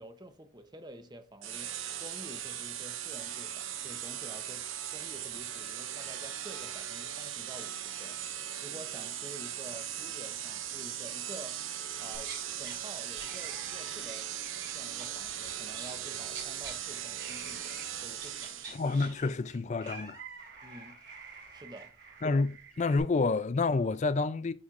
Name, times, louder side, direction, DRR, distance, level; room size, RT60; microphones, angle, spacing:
voice 1, 0.0-8.2 8.6-11.6 12.0-14.3 14.7-18.7 20.6-21.0 21.5-21.9, right 1 dB, 20° right, 0.8 m, -49 dB
sound 1, 1.4-19.0, right 10 dB, 90° right, 0.8 m, -39 dB
sound 2, 12.1-12.8 13.2-16.0 16.3-16.7 17.2-17.9 18.2-23.0, right 5 dB, 60° right, 3.6 m, -47 dB
voice 2, 18.7-20.2 22.2-24.5, left 3 dB, 35° left, 0.4 m, -29 dB
12.5 x 4.4 x 2.5 m
head